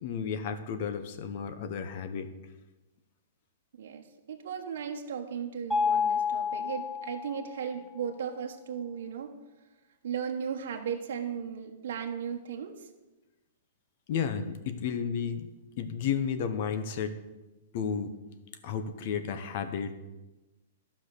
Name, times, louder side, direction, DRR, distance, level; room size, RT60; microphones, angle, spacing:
voice 1, 0.0-2.3 14.1-15.5 15.8-17.2 17.7-18.1 18.6-19.9, left 7 dB, 45° left, 10 dB, 1.1 m, -32 dB
voice 2, 3.7-9.4 10.0-12.9, right 7 dB, 65° right, 3 dB, 1.3 m, -36 dB
Mallet percussion, 5.7-7.7, left 6 dB, ahead, 0.6 m, -29 dB
12.0 x 5.9 x 6.7 m, 1.1 s
hypercardioid pair, 165°, 0 cm